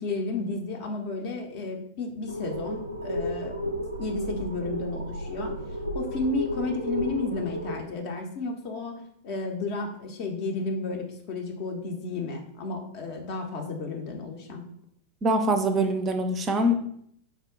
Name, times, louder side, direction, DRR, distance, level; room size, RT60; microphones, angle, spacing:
voice 1, 0.0-5.6 5.9-14.6, left 3 dB, 45° left, 2 dB, 0.5 m, -32 dB
sound 1, 2.3-7.8, equal, 90° right, 0.4 m, -33 dB
voice 2, 15.2-16.8, right 1 dB, 25° right, 7 dB, 0.4 m, -24 dB
4.4 x 2.1 x 3.6 m, 0.69 s
figure-of-eight pair, 90°, 0 cm